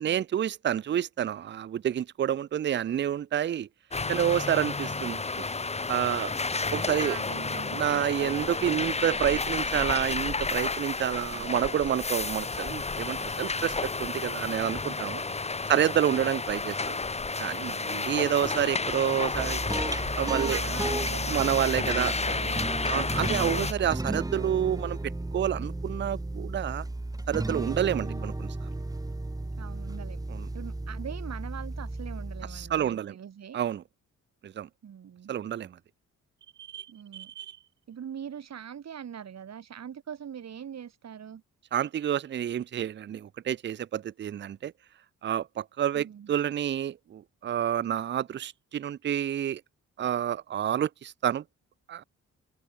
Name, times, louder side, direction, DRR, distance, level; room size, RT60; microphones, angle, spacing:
voice 1, 0.0-3.7 4.1-5.2 5.9-6.3 6.7-7.2 7.7-15.2 15.7-17.0 17.4-19.6 20.2-20.6 21.3-22.2 22.9-25.0 25.3-26.8 27.3-28.5 30.3-30.5 32.5-33.2 33.5-33.8 34.4-34.7 35.3-35.8 36.6-36.9 37.1-37.5 41.7-44.7 45.2-49.6 50.0-51.4 51.9-52.0, right 10 dB, 35° right, 0.5 m, -29 dB
sound 1, 3.9-23.7, left 3 dB, 20° left, 2.0 m, -31 dB
voice 2, 4.8-5.2 7.0-8.6 11.3-11.6 15.0-15.3 20.3-22.5 22.8-23.1 28.0-28.4 29.6-30.2 30.5-33.6 34.8-35.3 36.9-37.3 37.9-41.4 45.9-46.3, right 8 dB, 55° right, 4.0 m, -42 dB
sound 2, 19.3-32.9, right 2 dB, 10° right, 3.1 m, -34 dB
open air
wide cardioid pair, 155°, 32 cm